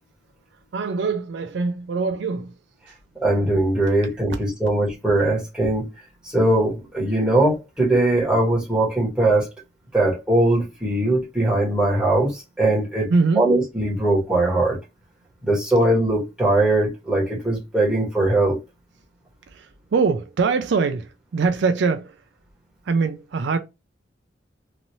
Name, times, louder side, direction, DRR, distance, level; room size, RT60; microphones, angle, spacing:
voice 1, 0.7-2.5 4.3-4.4 13.1-13.4 19.5-22.2 22.9-23.6, right 4 dB, 65° right, 0.4 m, -23 dB
voice 2, 3.2-5.9 6.2-9.5 9.9-13.1 13.3-14.8 15.4-18.6, right 2 dB, 5° right, 1.3 m, -20 dB
3.0 x 2.6 x 2.7 m
head